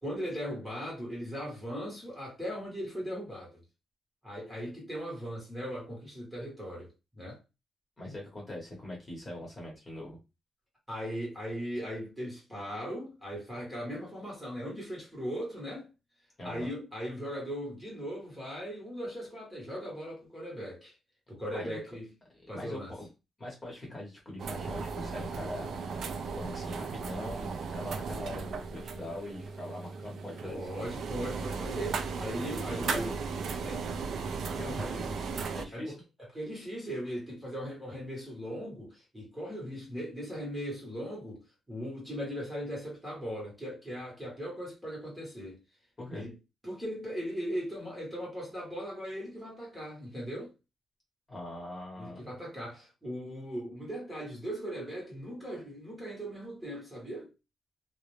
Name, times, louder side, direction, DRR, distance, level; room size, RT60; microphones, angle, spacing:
voice 1, 0.0-3.6 4.2-6.9 7.1-7.4 10.9-15.9 16.4-20.9 21.3-22.1 22.5-22.9 30.5-33.1 33.6-33.9 34.8-34.9 35.7-35.8 36.3-45.6 46.1-46.3 46.6-50.5 52.0-57.3, equal, 5° right, 1.0 m, -38 dB
voice 2, 8.0-10.2 16.4-16.7 21.5-21.8 22.5-23.1 23.4-25.8 26.3-30.6 32.7-33.1 34.6-35.2 35.5-35.9 46.0-46.2 51.3-52.2, left 1 dB, 20° left, 1.0 m, -41 dB
sound 1, 24.4-35.7, right 5 dB, 55° right, 0.3 m, -36 dB
2.3 x 2.0 x 3.0 m
wide cardioid pair, 165°, 0 cm